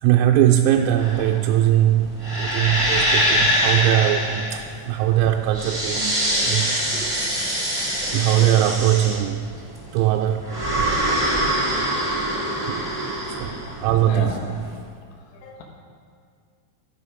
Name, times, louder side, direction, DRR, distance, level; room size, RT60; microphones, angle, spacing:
voice 1, 0.0-6.9 8.1-9.4 9.9-10.5 12.6-12.8 13.3-14.4, right 12 dB, 90° right, 2 dB, 3.3 m, -20 dB
sound 1, 1.0-14.6, equal, 15° right, 1.2 m, -24 dB
voice 2, 14.1-14.4 15.4-15.6, left 5 dB, 65° left, 0 dB, 3.7 m, -32 dB
13.0 x 11.5 x 5.1 m, 2.1 s
omnidirectional pair, 6.0 m